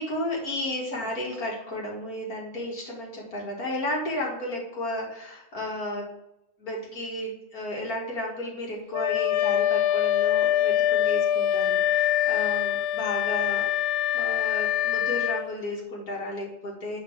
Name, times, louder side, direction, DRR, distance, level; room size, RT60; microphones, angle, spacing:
voice 1, 0.0-6.1 6.6-13.7 14.1-17.0, left 1 dB, 35° left, -3 dB, 1.7 m, -33 dB
Wind instrument woodwind instrument, 8.9-15.5, left 11 dB, 90° left, 2.0 m, -24 dB
5.2 x 5.1 x 6.5 m, 0.84 s
omnidirectional pair, 3.4 m